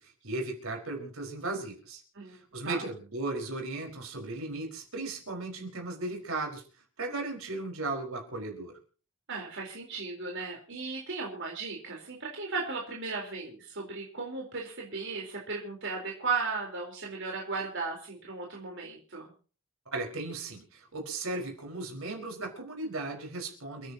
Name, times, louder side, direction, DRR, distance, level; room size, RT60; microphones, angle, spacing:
voice 1, 0.2-2.0 2.3-6.6 7.0-8.7 19.9-23.9, right 2 dB, 75° right, 2 dB, 4.9 m, -36 dB
voice 2, 9.3-19.3, right 4 dB, 60° right, -1 dB, 4.0 m, -36 dB
29.5 x 10.0 x 2.9 m, 0.39 s
head